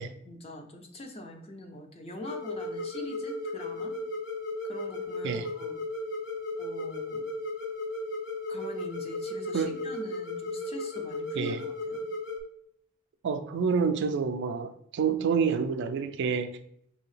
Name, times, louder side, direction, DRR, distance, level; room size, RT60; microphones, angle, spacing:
voice 1, 0.2-4.0 4.6-5.8 6.6-7.3 8.5-12.0, equal, 30° left, 3 dB, 0.6 m, -43 dB
sound 1, 2.2-12.4, left 2 dB, 60° left, 0.8 m, -35 dB
voice 2, 13.2-16.5, right 6 dB, 60° right, 9 dB, 0.3 m, -28 dB
5.3 x 2.7 x 3.2 m, 0.68 s
head